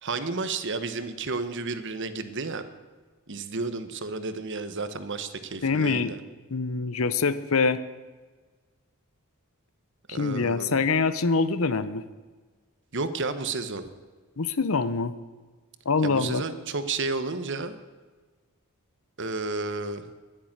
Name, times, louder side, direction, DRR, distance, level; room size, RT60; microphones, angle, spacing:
voice 1, 0.0-2.6 3.3-6.2 10.1-10.7 12.9-13.8 16.0-17.8 19.2-20.1, right 3 dB, 55° right, 11 dB, 1.1 m, -32 dB
voice 2, 5.6-6.1 6.5-7.8 10.1-12.0 14.4-15.1 15.9-16.4, left 4 dB, 70° left, 14 dB, 0.8 m, -25 dB
11.5 x 10.5 x 8.8 m, 1.4 s
head